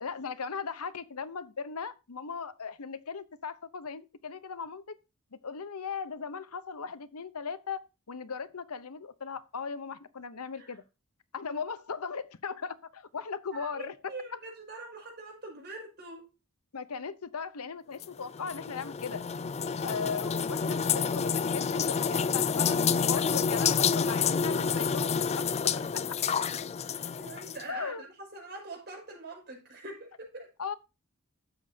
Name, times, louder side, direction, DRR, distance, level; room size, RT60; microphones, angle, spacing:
voice 1, 0.0-5.0 5.4-7.8 8.1-10.8 11.3-14.1 16.7-19.2 19.8-26.0 27.7-28.0 30.6-30.7, left 5 dB, 85° left, 0.9 m, -38 dB
voice 2, 13.5-16.3 20.4-20.8 26.5-30.5, right 2 dB, 50° right, 6.1 m, -44 dB
sound 1, 18.0-27.6, left 6 dB, 30° left, 0.4 m, -29 dB
12.5 x 8.5 x 2.8 m
head